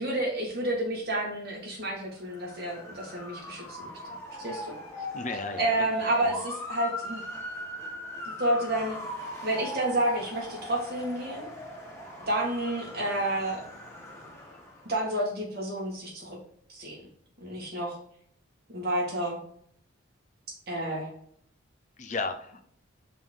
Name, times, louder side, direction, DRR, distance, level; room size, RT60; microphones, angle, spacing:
voice 1, 0.0-3.9 4.4-4.7 5.6-7.2 8.4-9.0 9.4-11.5 12.3-13.6 14.8-16.4 16.7-17.0 17.4-18.0 18.7-19.4 20.7-21.1, right 1 dB, 50° right, -2 dB, 2.2 m, -30 dB
Motor vehicle (road) / Siren, 2.2-14.9, left 1 dB, 15° left, 1.3 m, -39 dB
voice 2, 5.1-5.9 6.3-6.4 9.4-9.5 22.0-22.6, left 3 dB, 35° left, 8 dB, 0.5 m, -34 dB
5.4 x 3.9 x 4.5 m, 0.66 s
head